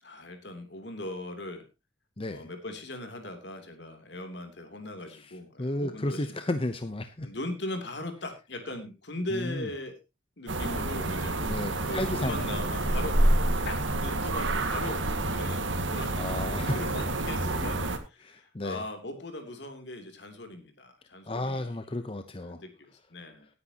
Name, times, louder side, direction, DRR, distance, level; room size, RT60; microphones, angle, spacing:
voice 1, 0.0-1.7 2.3-6.3 7.2-10.0 10.4-11.4 11.9-13.2 13.6-15.0 15.3-16.2 16.7-21.8 22.4-23.5, left 1 dB, 65° left, 6 dB, 3.2 m, -39 dB
voice 2, 2.2-2.5 5.6-7.3 9.3-9.7 11.4-12.4 16.2-16.8 18.2-18.8 21.3-22.6, left 1 dB, 30° left, 9 dB, 0.8 m, -33 dB
sound 1, 10.5-18.0, right 1 dB, 85° right, 2.0 m, -28 dB
18.5 x 9.6 x 2.9 m, 0.26 s
head